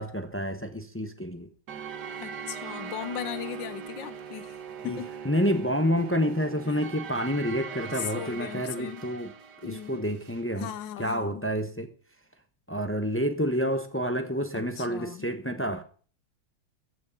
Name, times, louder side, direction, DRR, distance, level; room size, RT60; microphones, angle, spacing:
voice 1, 0.0-1.5 4.8-9.3 9.6-10.7 11.0-11.9 12.7-15.8, equal, 20° left, 0.3 m, -29 dB
sound 1, 1.7-10.5, right 6 dB, 60° right, 1.7 m, -41 dB
voice 2, 2.2-4.6 4.8-5.1 7.9-9.1 9.6-10.0 10.6-11.4 14.5-15.3, left 10 dB, 70° left, 1.6 m, -37 dB
14.5 x 6.3 x 8.1 m
omnidirectional pair, 2.1 m